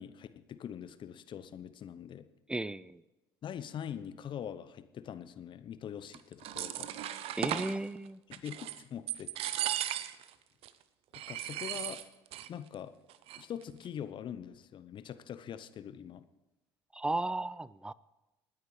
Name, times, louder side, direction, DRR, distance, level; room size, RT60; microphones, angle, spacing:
voice 1, 0.0-2.3 3.4-6.9 7.6-7.9 8.3-9.3 9.6-10.0 11.3-12.0 12.5-12.9 13.4-16.2, left 9 dB, 40° left, 12 dB, 0.8 m, -43 dB
voice 2, 2.5-3.0 7.4-8.2 16.9-17.9, right 2 dB, 5° right, 21 dB, 0.4 m, -35 dB
sound 1, 6.1-7.8 8.3-8.8 9.1-10.3 10.6-10.7 11.1-12.5 12.7-12.8 13.1-13.6, right 12 dB, 50° right, 0.7 m, -36 dB
27.5 x 9.6 x 3.3 m, 1.0 s
figure-of-eight pair, 60°, 12 cm